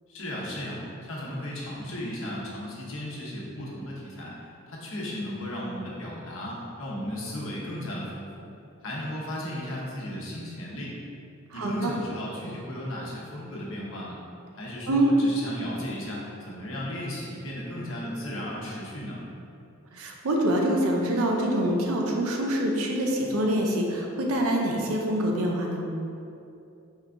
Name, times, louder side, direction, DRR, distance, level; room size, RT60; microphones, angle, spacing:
voice 1, 0.1-4.3 4.7-8.5 8.8-11.0 11.5-14.2 14.5-19.2, left 1 dB, 65° left, -4 dB, 0.8 m, -35 dB
voice 2, 11.5-11.9 14.9-15.1 19.9-25.9, right 1 dB, 90° right, 0 dB, 0.6 m, -25 dB
4.5 x 2.5 x 3.4 m, 2.7 s
head